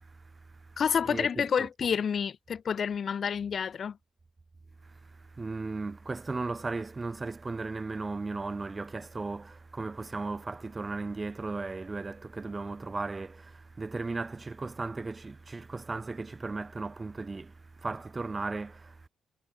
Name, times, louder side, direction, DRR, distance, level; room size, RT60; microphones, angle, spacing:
voice 1, 0.0-0.8 1.0-1.7 4.8-19.1, right 3 dB, 25° right, 1.7 m, -36 dB
voice 2, 0.8-4.0, left 7 dB, 50° left, 0.4 m, -29 dB
cardioid pair, 90°, 0 cm